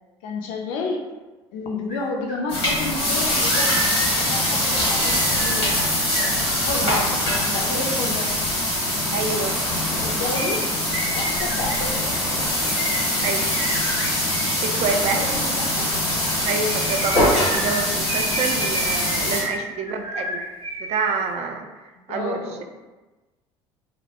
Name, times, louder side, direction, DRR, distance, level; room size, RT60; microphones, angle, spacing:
voice 1, 0.2-1.0 1.5-3.8 4.2-5.7 6.6-7.1 7.3-8.3 10.0-10.7 11.1-12.2 15.1-15.9 19.1-19.3 22.1-22.6, left 3 dB, 65° left, 2 dB, 0.4 m, -30 dB
sound 1, 1.9-2.0 2.3-7.0 10.3-14.6 16.4-21.0 21.3-21.4, right 1 dB, 30° right, 0.7 m, -32 dB
sound 2, 2.5-19.4, left 1 dB, 85° left, 1.0 m, -23 dB
Waves surf, 3.1-17.9, equal, 15° left, 0.5 m, -37 dB
voice 2, 9.1-9.6 13.2-13.5 14.6-15.2 16.4-20.4 20.8-21.7 22.1-22.6, right 5 dB, 50° right, 5 dB, 0.4 m, -27 dB
2.1 x 2.1 x 2.8 m, 1.2 s
hypercardioid pair, 65°, 14 cm